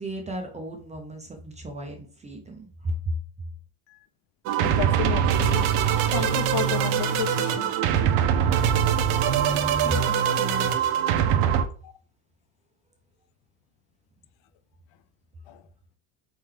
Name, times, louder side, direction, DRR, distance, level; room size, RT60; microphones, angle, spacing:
voice 1, 0.0-3.1 9.5-10.8, equal, 15° right, 0.4 m, -34 dB
sound 1, 4.5-11.7, right 8 dB, 75° right, 0.7 m, -23 dB
voice 2, 4.6-5.8 6.1-7.8 11.8-11.9 15.5-15.6, left 12 dB, 65° left, 0.6 m, -32 dB
4.3 x 3.8 x 3.1 m
cardioid pair, 165°, 50 cm